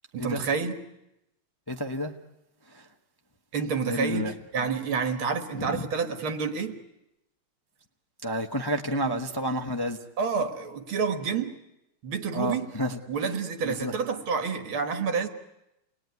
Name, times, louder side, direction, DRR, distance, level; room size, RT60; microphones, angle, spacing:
voice 1, 0.1-0.7 3.5-6.8 9.0-9.2 10.2-11.5 12.0-12.7 13.1-15.3, right 5 dB, 75° right, 2.6 m, -29 dB
voice 2, 1.7-2.1 2.7-2.9 3.9-4.3 5.5-5.9 8.2-10.0 12.3-13.3 13.6-13.9, equal, 15° left, 0.8 m, -30 dB
29.0 x 21.0 x 9.5 m
omnidirectional pair, 2.3 m